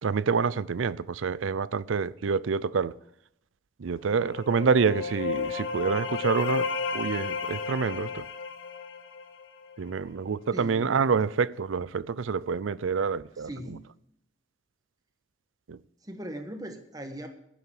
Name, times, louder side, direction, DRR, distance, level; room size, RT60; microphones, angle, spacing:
voice 1, 0.0-2.9 3.8-6.7 6.9-8.2 9.8-13.8 15.7-15.8, right 5 dB, 90° right, 0.5 m, -27 dB
sound 1, 4.1-9.8, left 5 dB, 80° left, 1.4 m, -33 dB
voice 2, 10.5-10.9 13.4-13.9 16.0-17.3, right 1 dB, 20° right, 1.3 m, -39 dB
11.0 x 6.8 x 8.8 m
head